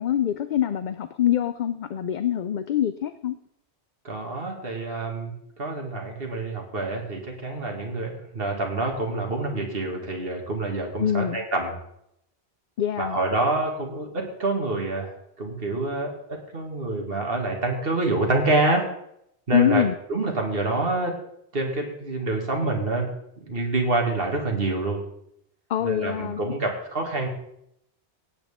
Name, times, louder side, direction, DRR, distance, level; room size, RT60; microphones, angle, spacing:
voice 1, 0.0-3.4 11.0-11.4 12.8-13.2 19.5-20.0 25.7-26.4, left 10 dB, 55° left, 12 dB, 0.6 m, -24 dB
voice 2, 4.0-11.8 13.0-18.9 19.5-19.8 20.1-21.1 21.5-23.1 23.5-25.0 25.8-27.3, right 2 dB, 60° right, 2 dB, 2.2 m, -27 dB
17.0 x 8.8 x 3.6 m, 0.76 s
omnidirectional pair, 1.1 m